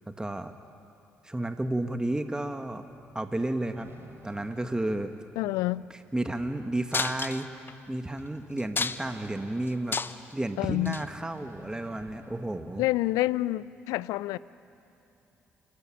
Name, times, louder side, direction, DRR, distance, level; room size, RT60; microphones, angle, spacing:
voice 1, 0.1-0.5 1.2-2.9 3.1-3.9 4.2-5.1 6.1-7.5 7.9-10.0 10.3-12.8, right 1 dB, 15° right, 1.6 m, -32 dB
sound 1, 2.6-13.0, right 3 dB, 45° right, 3.4 m, -54 dB
voice 2, 5.4-5.8 10.6-11.0 12.8-14.4, left 17 dB, 75° left, 0.5 m, -28 dB
sound 2, 6.9-7.7 8.2-8.3 8.6-9.3 9.7-10.3 10.8-11.0 12.0-12.1, left 4 dB, 35° left, 0.9 m, -31 dB
28.0 x 15.0 x 10.0 m
hypercardioid pair, 45°, 6 cm